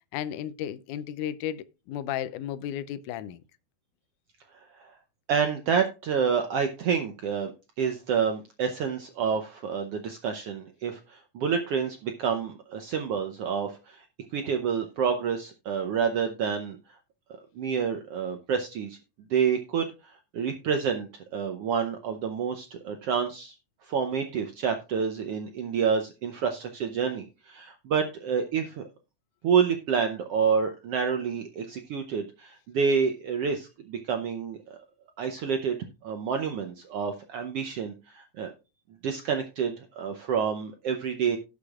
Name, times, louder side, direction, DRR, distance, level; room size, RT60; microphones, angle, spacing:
voice 1, 0.1-3.4, left 10 dB, 85° left, 2.2 m, -34 dB
voice 2, 5.3-7.5 7.8-14.1 14.3-16.8 17.5-19.0 19.3-23.5 23.8-28.8 29.4-34.8 35.2-35.8 36.0-38.5 39.0-41.4, right 6 dB, 70° right, 1.4 m, -28 dB
17.5 x 6.7 x 2.4 m
omnidirectional pair, 3.5 m